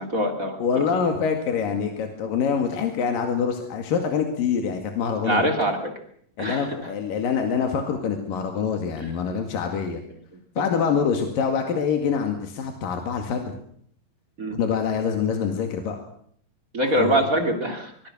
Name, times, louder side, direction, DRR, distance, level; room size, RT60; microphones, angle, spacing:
voice 1, 0.0-0.8 5.2-5.9 6.4-6.7 10.6-10.7 14.4-14.6 16.7-17.9, right 1 dB, 25° right, 4 dB, 3.1 m, -24 dB
voice 2, 0.6-5.4 6.4-10.0 10.6-13.5 14.5-16.0 17.0-17.2, left 6 dB, 80° left, 4 dB, 3.8 m, -25 dB
24.0 x 22.5 x 6.3 m, 0.64 s
omnidirectional pair, 3.9 m